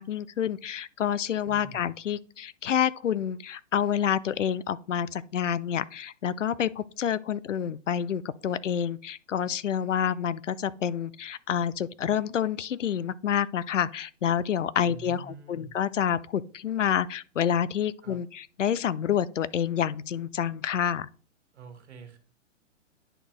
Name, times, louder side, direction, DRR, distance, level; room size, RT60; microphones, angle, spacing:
voice 1, 0.0-21.1, left 9 dB, 75° left, 0.5 m, -28 dB
voice 2, 1.5-1.9 14.8-15.7 18.0-18.2 21.5-22.2, right 4 dB, 65° right, 1.8 m, -46 dB
10.0 x 4.3 x 3.1 m
figure-of-eight pair, 110°, 37 cm